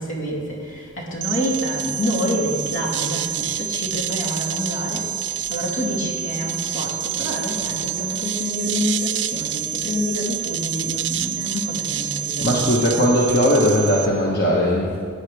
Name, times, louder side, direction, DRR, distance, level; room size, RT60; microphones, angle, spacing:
voice 1, 0.0-13.1, left 1 dB, 80° left, -3 dB, 2.9 m, -27 dB
sound 1, 1.2-14.1, right 10 dB, 70° right, 0.5 m, -27 dB
voice 2, 12.4-15.0, equal, 55° left, -3 dB, 1.2 m, -18 dB
16.0 x 9.6 x 3.5 m, 2.2 s
head